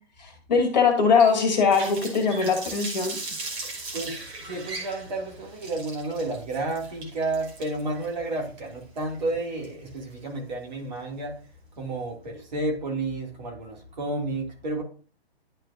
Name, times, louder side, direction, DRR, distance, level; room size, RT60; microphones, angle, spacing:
voice 1, 0.2-3.2, left 5 dB, 45° left, 1.8 m, -21 dB
Water tap faucet, 1.2-10.1, right 3 dB, 15° right, 1.3 m, -38 dB
voice 2, 3.6-11.3 11.8-14.8, right 2 dB, 45° right, 2.2 m, -31 dB
11.0 x 4.5 x 2.5 m
figure-of-eight pair, 130°, 31 cm